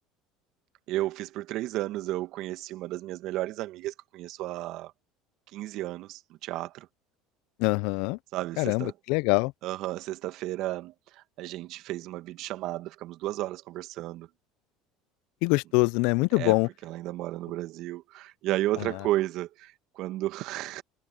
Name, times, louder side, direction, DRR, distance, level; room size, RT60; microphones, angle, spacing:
voice 1, 0.9-4.9 5.5-6.9 8.3-8.9 9.6-14.3 16.3-20.8, right 16 dB, 65° right, 1.5 m, -33 dB
voice 2, 7.6-8.2 8.6-9.5 15.4-16.7, left 27 dB, 70° left, 0.4 m, -24 dB
supercardioid pair, 90°, 0 cm